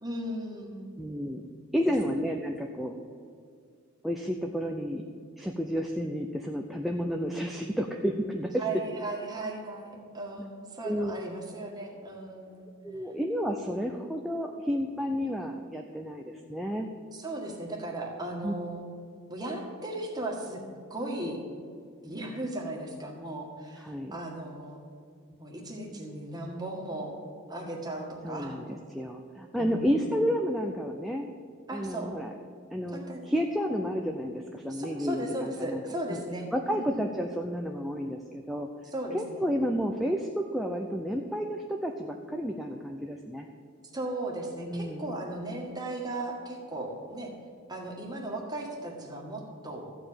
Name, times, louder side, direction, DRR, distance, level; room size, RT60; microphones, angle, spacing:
voice 1, 0.0-0.9 1.8-1.9 8.6-12.7 17.1-18.9 19.3-20.6 20.9-21.4 22.0-24.8 25.4-27.2 27.5-28.6 29.6-30.0 31.7-32.1 32.9-33.4 34.7-37.0 38.9-39.4 43.9-47.3 47.7-49.8, right 1 dB, 20° right, -1 dB, 1.8 m, -36 dB
voice 2, 1.0-1.4 1.7-3.0 4.0-5.0 5.4-8.6 10.8-11.1 12.8-16.9 18.4-18.5 23.8-24.2 28.2-28.6 28.9-31.3 31.7-32.3 32.7-33.0 33.2-35.8 36.1-36.2 36.5-38.7 39.1-43.5 44.6-45.1, equal, ahead, 2 dB, 0.5 m, -31 dB
14.0 x 4.9 x 9.0 m, 2.3 s
head